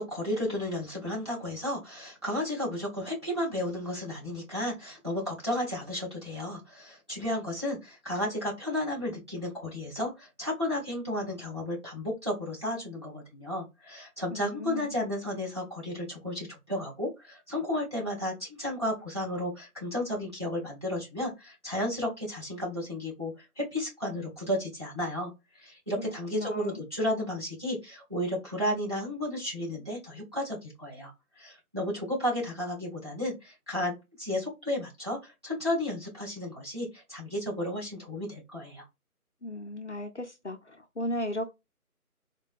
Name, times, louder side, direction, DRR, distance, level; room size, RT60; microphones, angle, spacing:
voice 1, 0.0-25.3 25.6-38.8, left 1 dB, 20° right, 0.8 m, -33 dB
voice 2, 14.3-14.9 26.3-26.8 39.4-41.5, left 1 dB, 55° left, 0.5 m, -35 dB
3.8 x 2.1 x 2.3 m
figure-of-eight pair, 155°, 44 cm